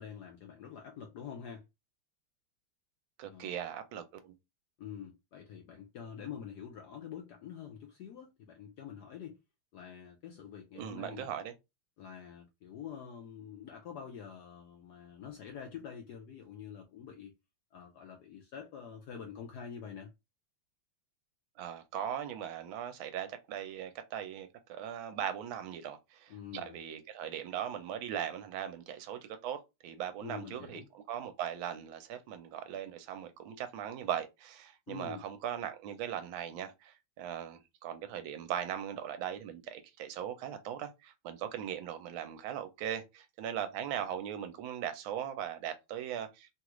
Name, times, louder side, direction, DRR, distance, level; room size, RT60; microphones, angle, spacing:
voice 1, 0.0-1.6 3.3-3.6 4.8-9.4 9.7-11.3 12.0-17.3 17.7-20.1 26.3-26.8 30.2-30.9 34.9-35.3, left 8 dB, 75° left, 1.0 m, -46 dB
voice 2, 3.2-4.3 10.7-11.5 21.6-46.5, right 9 dB, 75° right, 1.3 m, -39 dB
3.3 x 2.4 x 3.0 m
omnidirectional pair, 2.3 m